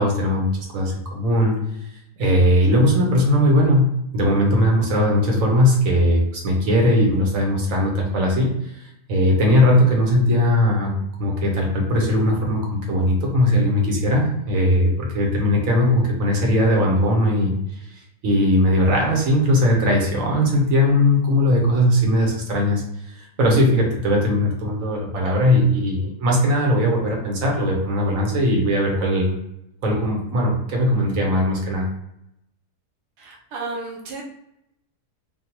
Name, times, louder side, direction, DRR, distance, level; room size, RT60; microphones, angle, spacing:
voice 1, 0.0-1.5 2.2-3.9 4.1-8.5 9.1-17.6 18.2-29.4 29.8-31.9, left 1 dB, 60° right, -1 dB, 1.2 m, -19 dB
voice 2, 33.2-34.2, right 3 dB, 85° right, -1 dB, 1.4 m, -33 dB
3.6 x 2.3 x 2.8 m, 0.81 s
omnidirectional pair, 1.7 m